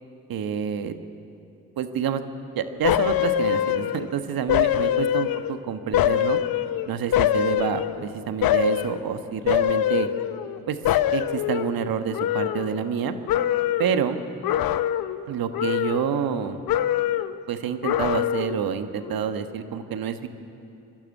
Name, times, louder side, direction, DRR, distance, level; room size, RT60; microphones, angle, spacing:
voice 1, 0.3-0.9 1.8-2.2 2.6-6.4 6.8-10.1 10.7-10.8 11.1-13.1 13.8-14.2 15.3-16.6 17.5-20.3, right 8 dB, 65° right, 8 dB, 1.4 m, -28 dB
sound 1, 2.8-4.1 4.5-5.6 5.9-8.0 8.4-9.0 9.5-10.6 10.8-13.0 13.3-14.0 14.4-15.2 15.5-16.4 16.7-17.4 17.8-18.6 19.0-19.1, left 11 dB, 65° left, 0.8 m, -24 dB
22.5 x 12.5 x 9.6 m, 2.7 s
hypercardioid pair, 45°, 38 cm